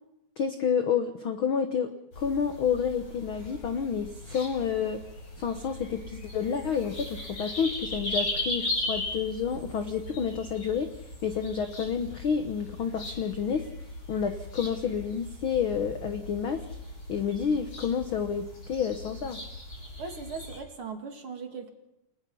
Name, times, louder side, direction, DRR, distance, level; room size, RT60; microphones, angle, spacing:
voice 1, 0.4-5.0 5.4-10.9 11.2-13.7 14.1-16.6 17.1-19.4, left 7 dB, 70° left, 7 dB, 1.2 m, -29 dB
sound 1, 2.1-20.6, left 1 dB, 45° left, 6.9 m, -38 dB
voice 2, 20.0-21.7, right 5 dB, 45° right, 4 dB, 2.7 m, -38 dB
29.5 x 19.0 x 5.6 m, 0.86 s
omnidirectional pair, 3.9 m